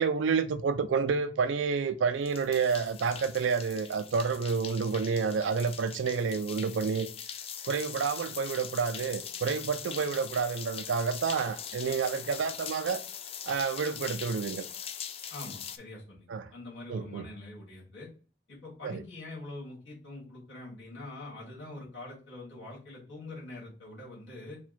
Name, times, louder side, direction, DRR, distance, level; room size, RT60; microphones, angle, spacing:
voice 1, 0.0-7.1 7.6-13.0 13.5-14.7 16.3-16.5 16.9-17.3 18.8-19.0, right 5 dB, 85° right, 0.4 m, -29 dB
sound 1, 2.3-15.8, left 8 dB, 30° left, 0.3 m, -42 dB
voice 2, 15.3-18.1 18.5-24.6, left 2 dB, 80° left, 2.0 m, -44 dB
4.4 x 2.3 x 4.1 m
head